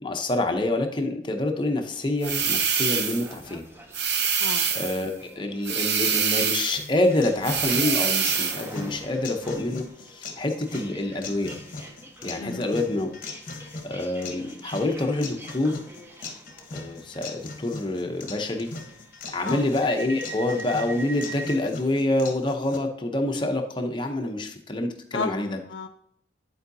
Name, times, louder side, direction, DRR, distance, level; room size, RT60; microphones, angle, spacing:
voice 1, 0.0-3.6 4.7-11.5 12.2-13.1 13.5-15.8 16.7-18.7 19.3-25.6, left 2 dB, 25° left, 4 dB, 0.7 m, -27 dB
sound 1, 2.2-21.6, right 2 dB, 10° right, 0.6 m, -45 dB
sound 2, 2.2-3.3 3.9-5.0 5.7-6.8 7.4-8.7, right 6 dB, 60° right, 0.7 m, -25 dB
voice 2, 4.4-4.7 12.4-12.7 19.4-19.7 25.1-25.9, left 4 dB, 65° left, 3 dB, 0.4 m, -33 dB
sound 3, 6.8-22.8, left 3 dB, 45° left, 1.0 m, -40 dB
10.5 x 4.6 x 2.7 m, 0.71 s
head